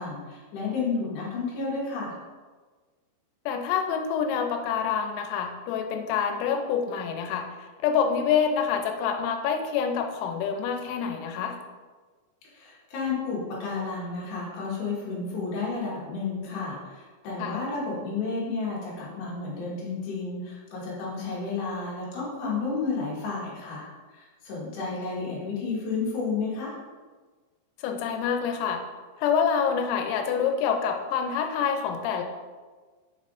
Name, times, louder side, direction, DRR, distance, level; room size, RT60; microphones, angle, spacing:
voice 1, 0.0-2.1 12.5-26.8, left 4 dB, 65° left, -6 dB, 3.2 m, -31 dB
voice 2, 3.5-11.6 17.4-17.6 27.8-28.8 29.2-32.2, left 7 dB, 90° left, 5 dB, 3.4 m, -27 dB
7.0 x 5.4 x 2.5 m, 1.4 s
omnidirectional pair, 5.9 m